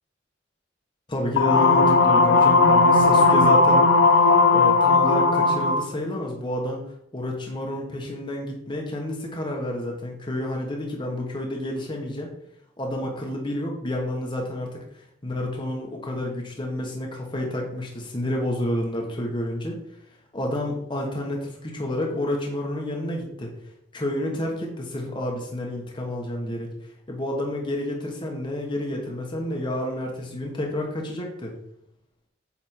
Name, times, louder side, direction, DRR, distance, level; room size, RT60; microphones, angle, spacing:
voice 1, 1.1-6.9 7.1-12.3 12.8-14.8 15.2-19.8 20.3-23.5 23.9-26.7 27.1-31.5, left 1 dB, 25° left, 0 dB, 1.1 m, -30 dB
sound 1, 1.4-5.9, left 3 dB, 85° left, 0.7 m, -17 dB
8.2 x 3.4 x 4.3 m, 0.75 s
head